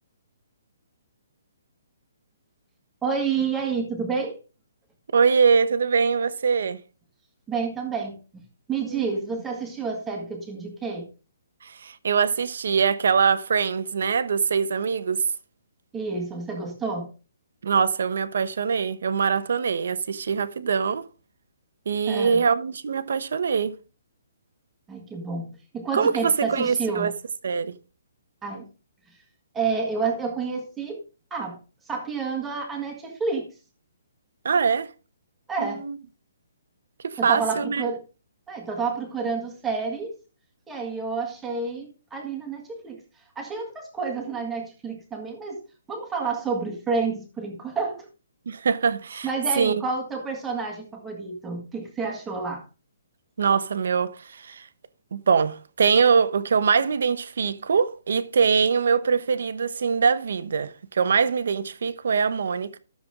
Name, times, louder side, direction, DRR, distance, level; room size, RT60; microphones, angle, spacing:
voice 1, 3.0-4.4 7.5-8.4 8.7-11.1 15.9-17.1 22.1-22.4 24.9-27.1 28.4-28.7 29.5-31.0 31.3-31.6 31.8-33.5 35.5-35.8 37.2-38.0 38.5-40.1 40.7-43.0 43.3-45.6 45.9-48.1 49.2-52.6, right 4 dB, 5° right, 1.7 m, -29 dB
voice 2, 5.1-6.8 8.9-9.2 11.6-15.2 17.6-21.0 21.9-23.8 25.9-27.1 27.4-27.7 34.4-34.9 35.6-36.0 37.0-37.8 48.5-49.3 49.6-49.8 53.4-54.7 55.1-62.8, right 6 dB, 55° right, 1.0 m, -23 dB
13.5 x 6.9 x 3.7 m
hypercardioid pair, 180°, 0 cm